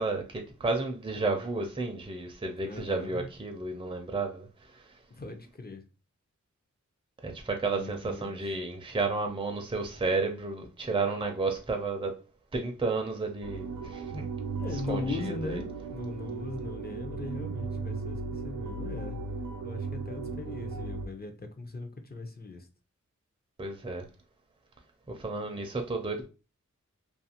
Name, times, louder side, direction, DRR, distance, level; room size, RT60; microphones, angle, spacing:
voice 1, 0.0-4.8 7.2-12.2 12.5-14.3 14.9-15.6 23.6-24.0 25.1-26.3, right 3 dB, 15° right, 0.5 m, -32 dB
voice 2, 2.6-3.3 5.1-5.8 7.6-8.6 14.6-19.2 19.6-22.7, left 3 dB, 30° left, 0.5 m, -39 dB
sound 1, 13.4-21.1, right 3 dB, 80° right, 0.5 m, -36 dB
2.5 x 2.4 x 2.8 m
wide cardioid pair, 75°, 30 cm